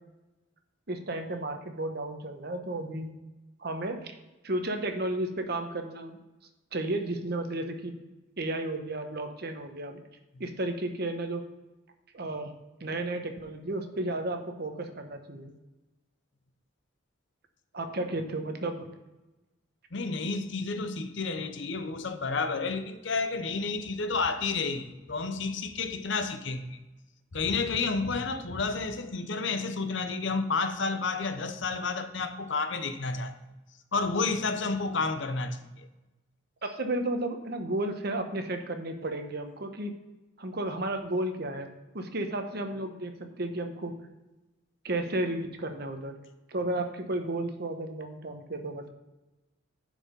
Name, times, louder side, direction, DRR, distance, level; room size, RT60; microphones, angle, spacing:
voice 1, 0.9-3.1 3.6-4.1 4.4-6.2 6.7-7.9 8.4-10.0 10.4-11.5 12.1-12.5 12.8-15.5 17.7-18.9 36.6-39.9 40.4-41.7 41.9-43.9 44.8-46.2 46.5-48.9, right 1 dB, 50° right, 1.0 m, -33 dB
voice 2, 19.9-26.8 27.3-33.3 33.9-35.9, left 4 dB, 60° left, 0.7 m, -31 dB
10.5 x 4.9 x 5.1 m
head